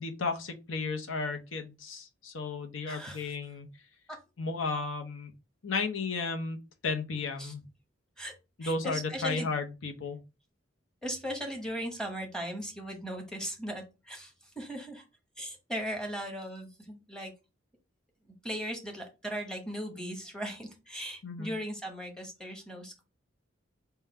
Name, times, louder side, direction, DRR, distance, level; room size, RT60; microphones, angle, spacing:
voice 1, 0.0-3.7 4.4-5.3 5.6-7.6 8.6-10.2 21.2-21.5, left 4 dB, 90° left, 4 dB, 0.8 m, -34 dB
voice 2, 2.9-3.3 4.1-4.2 7.4-7.5 8.2-8.3 8.6-9.5 11.0-15.0 15.4-17.3 18.4-23.0, equal, 5° left, 2 dB, 0.9 m, -38 dB
3.7 x 2.3 x 4.2 m, 0.28 s
head